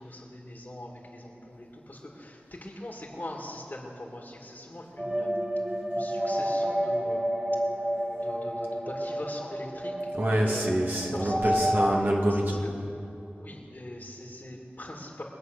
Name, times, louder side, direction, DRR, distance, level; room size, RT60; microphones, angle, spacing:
voice 1, 0.0-5.4 5.9-7.3 8.2-9.9 10.3-10.8 11.1-11.5 12.3-12.6 13.3-15.2, left 1 dB, 50° left, -1 dB, 2.2 m, -42 dB
sound 1, 5.0-11.9, equal, 20° right, 3.0 m, -30 dB
voice 2, 10.1-12.6, right 1 dB, 55° right, -2 dB, 2.1 m, -26 dB
23.0 x 8.0 x 6.6 m, 2.7 s
wide cardioid pair, 40°, 4 cm